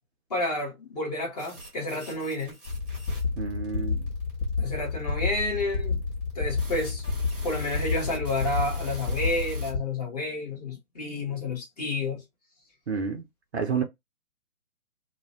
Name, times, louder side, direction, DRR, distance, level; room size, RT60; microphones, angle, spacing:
voice 1, 0.3-2.5 4.6-6.0 6.3-7.0 7.4-12.2, left 2 dB, 25° left, 0.9 m, -30 dB
sound 1, 1.4-9.7, right 1 dB, 10° right, 0.7 m, -45 dB
sound 2, 2.7-9.8, left 4 dB, 55° left, 1.1 m, -30 dB
voice 2, 3.4-4.1 12.9-13.2 13.5-13.8, right 6 dB, 50° right, 0.4 m, -29 dB
2.4 x 2.1 x 2.4 m
figure-of-eight pair, 140°, 46 cm